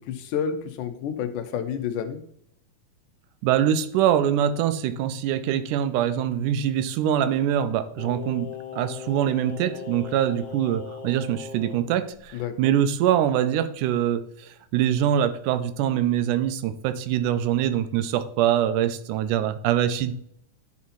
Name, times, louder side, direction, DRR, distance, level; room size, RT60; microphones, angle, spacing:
voice 1, 0.1-2.2 12.3-12.5, left 8 dB, 80° left, 8 dB, 2.4 m, -29 dB
voice 2, 3.4-20.1, right 10 dB, 80° right, 12 dB, 2.1 m, -24 dB
Singing, 8.0-11.8 12.1-12.3, left 6 dB, 60° left, 1.3 m, -38 dB
11.0 x 4.2 x 4.2 m, 0.68 s
omnidirectional pair, 3.7 m